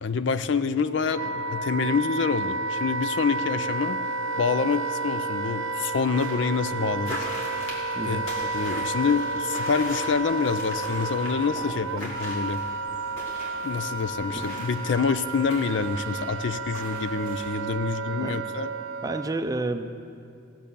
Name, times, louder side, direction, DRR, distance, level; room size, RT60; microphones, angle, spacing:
voice 1, 0.0-4.0 4.4-7.3 8.0-12.6 13.6-18.7, left 5 dB, 60° left, 12 dB, 0.5 m, -27 dB
Wind instrument woodwind instrument, 0.6-19.4, right 3 dB, 80° right, 0.6 m, -31 dB
sound 1, 6.1-17.7, equal, 80° left, 2.9 m, -41 dB
sound 2, 11.2-16.4, equal, 45° left, 2.7 m, -47 dB
voice 2, 19.0-20.0, right 2 dB, 20° right, 8 dB, 0.5 m, -30 dB
17.5 x 7.5 x 6.9 m, 2.4 s
head